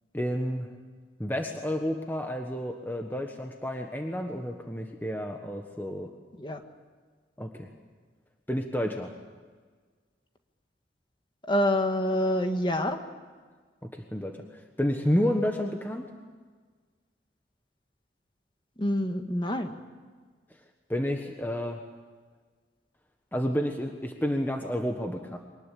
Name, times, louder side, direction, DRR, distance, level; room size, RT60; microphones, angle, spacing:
voice 1, 0.1-0.7 1.2-6.1 7.4-7.7 8.5-9.1 13.8-16.1 20.9-21.8 23.3-25.4, equal, 10° left, 3 dB, 1.3 m, -30 dB
voice 2, 11.5-13.0 18.8-19.7, left 1 dB, 25° left, 6 dB, 1.7 m, -26 dB
24.0 x 20.0 x 8.6 m, 1.5 s
head